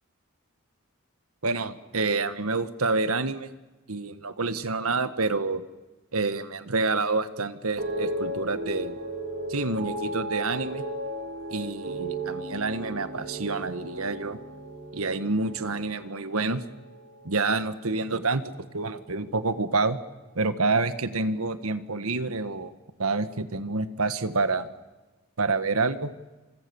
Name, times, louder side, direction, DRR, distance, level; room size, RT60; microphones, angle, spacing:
voice 1, 1.4-3.5 3.9-5.6 6.1-9.0 9.5-10.8 11.5-14.4 14.9-16.6 17.2-20.0 20.3-22.7 23.0-24.7 25.4-26.1, right 3 dB, 85° right, 11 dB, 1.6 m, -28 dB
sound 1, 7.8-18.1 18.4-19.0, right 1 dB, 65° right, 4.3 m, -36 dB
28.5 x 26.5 x 7.1 m, 1.2 s
head